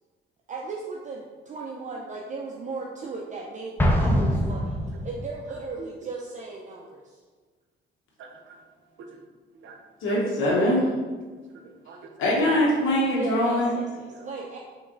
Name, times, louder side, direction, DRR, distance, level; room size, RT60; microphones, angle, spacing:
voice 1, 0.5-4.8 5.0-7.2 13.2-14.6, right 3 dB, 40° right, -2 dB, 0.5 m, -36 dB
Explosion, 3.8-5.4, equal, 10° left, 0.6 m, -24 dB
voice 2, 8.2-8.6 9.6-9.8 10.1-10.2 11.3-12.1 14.1-14.3, right 5 dB, 75° right, 3 dB, 0.7 m, -46 dB
voice 3, 10.0-10.9 12.2-13.7, left 1 dB, 85° left, -4 dB, 1.0 m, -22 dB
3.6 x 3.1 x 3.8 m, 1.4 s
cardioid pair, 90°, 20 cm